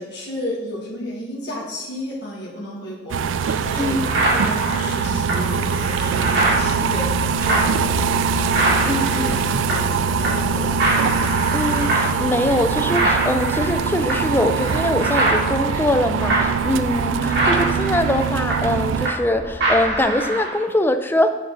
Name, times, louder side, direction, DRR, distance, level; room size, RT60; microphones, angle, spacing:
voice 1, 0.0-7.1 7.4-10.9, left 1 dB, 60° left, -4 dB, 1.7 m, -33 dB
sound 1, 3.1-3.2 3.6-10.0 10.2-10.5 10.8-19.3 19.6-20.6, right 2 dB, 60° right, 2.4 m, -24 dB
sound 2, 3.1-19.1, right 6 dB, 85° right, 0.3 m, -23 dB
voice 2, 3.8-4.2 8.9-9.3 11.5-21.3, left 1 dB, 10° left, 8 dB, 0.4 m, -22 dB
sound 3, 6.2-20.0, equal, 30° left, 0.9 m, -36 dB
7.6 x 5.8 x 4.0 m, 1.2 s
head